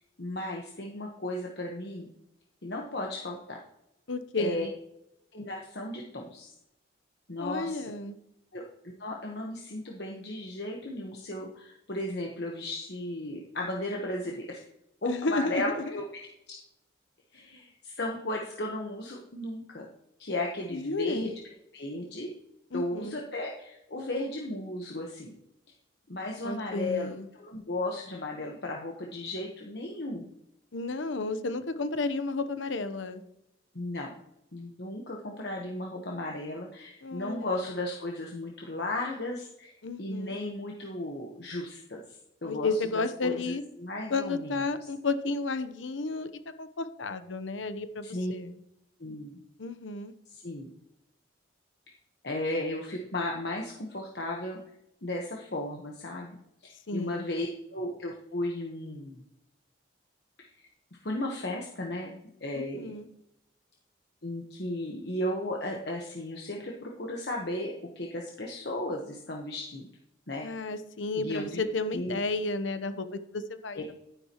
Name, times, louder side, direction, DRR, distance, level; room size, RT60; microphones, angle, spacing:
voice 1, 0.0-2.1 2.6-3.6 4.4-4.7 5.3-6.5 7.3-7.8 8.5-14.6 15.0-16.0 16.5-16.6 17.3-19.9 20.2-21.3 21.7-22.3 22.7-25.3 26.1-30.3 33.7-34.1 34.5-44.6 48.0-48.3 49.0-49.3 50.3-50.7 52.2-54.6 55.0-56.4 56.6-59.2 60.4-60.5 61.0-62.1 62.4-62.9 64.2-69.9 70.3-70.5 71.2-71.6 71.9-72.2 73.7-73.9, left 1 dB, 60° left, 0 dB, 1.2 m, -35 dB
voice 2, 4.1-4.7 7.4-8.2 15.0-16.0 20.7-21.3 22.7-23.2 26.4-27.3 30.7-33.2 37.0-37.5 39.8-40.3 42.4-43.6 44.1-46.3 46.6-48.6 49.6-50.1 56.9-57.2 62.5-63.1 70.4-73.9, left 3 dB, 90° left, 11 dB, 0.9 m, -32 dB
11.5 x 10.5 x 3.0 m, 0.84 s
head